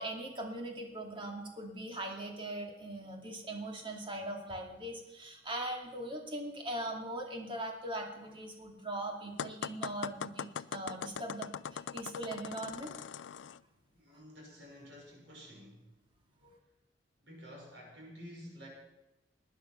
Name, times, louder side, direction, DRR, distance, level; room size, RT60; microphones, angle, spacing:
voice 1, 0.0-12.9 16.4-16.6, right 1 dB, 30° right, 1 dB, 2.5 m, -40 dB
sound 1, 9.4-13.6, left 7 dB, 90° left, 0.4 m, -41 dB
voice 2, 13.9-15.9 17.2-18.7, equal, 75° right, -1 dB, 6.0 m, -51 dB
18.5 x 10.0 x 5.8 m, 0.97 s
head